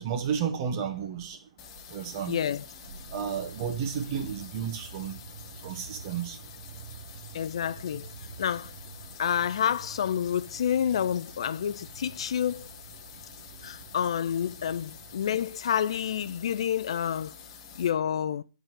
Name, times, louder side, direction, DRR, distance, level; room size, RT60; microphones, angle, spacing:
voice 1, 0.0-1.4 1.9-2.3 3.1-5.2 5.6-6.4, right 7 dB, 35° right, 1.5 m, -32 dB
sound 1, 1.6-17.9, left 6 dB, 30° left, 1.0 m, -48 dB
voice 2, 2.3-2.7 7.3-8.1 8.4-8.7 9.2-12.7 13.6-17.3 17.8-18.4, left 9 dB, 55° left, 0.4 m, -28 dB
sound 2, 2.8-15.3, right 7 dB, 60° right, 0.7 m, -48 dB
8.9 x 4.0 x 6.3 m
hypercardioid pair, 145°, 4 cm